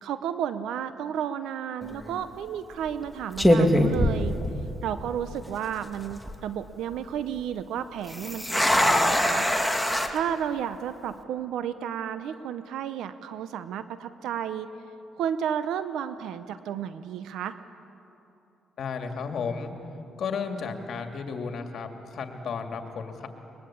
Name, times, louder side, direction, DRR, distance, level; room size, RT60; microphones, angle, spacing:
voice 1, 0.0-4.3 4.8-9.5 10.1-14.7 15.2-17.5, right 9 dB, 80° right, 12 dB, 0.8 m, -32 dB
sound 1, 1.8-2.1 2.9-3.0 3.4-4.9 5.2-5.3 5.9-6.3 8.1-10.1, left 1 dB, ahead, 2.0 m, -23 dB
voice 2, 18.8-19.7 20.2-23.3, left 5 dB, 60° left, 5 dB, 2.3 m, -33 dB
22.0 x 21.0 x 8.5 m, 2.9 s
cardioid pair, 90°, 0 cm